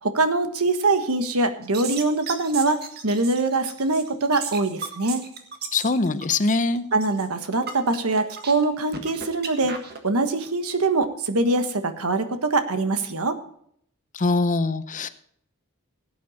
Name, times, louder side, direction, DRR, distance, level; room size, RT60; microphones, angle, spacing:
voice 1, 0.0-5.2 6.9-9.8 10.0-13.4, right 3 dB, 75° right, 9 dB, 1.3 m, -23 dB
sound 1, 1.6-10.0, right 5 dB, 45° right, 1.6 m, -36 dB
voice 2, 5.7-6.9 14.1-15.1, left 3 dB, 35° left, 13 dB, 0.7 m, -23 dB
17.0 x 8.7 x 4.1 m, 0.65 s
head